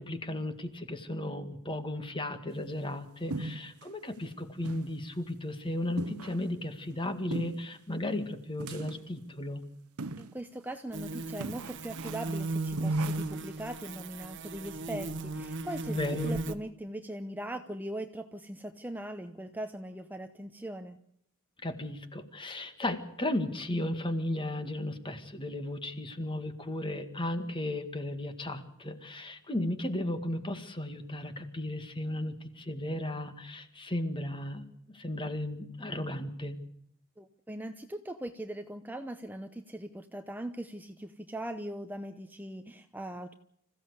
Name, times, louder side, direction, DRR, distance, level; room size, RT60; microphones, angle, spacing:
voice 1, 0.0-9.6 15.9-16.3 21.6-36.6, left 1 dB, 25° left, 9 dB, 2.1 m, -35 dB
sound 1, 3.3-3.9 4.2-4.3 4.6-4.9 5.3-5.4 6.0-6.6 7.3-7.8 8.6-9.1 10.0-10.4 10.8-10.9 11.4-12.4 12.8-13.4, right 3 dB, 85° right, 1.0 m, -40 dB
voice 2, 10.2-21.0 37.2-43.3, right 1 dB, 10° right, 8 dB, 0.9 m, -40 dB
sound 2, 10.9-16.6, right 2 dB, 55° right, 1.3 m, -35 dB
26.5 x 15.5 x 8.3 m, 0.70 s
head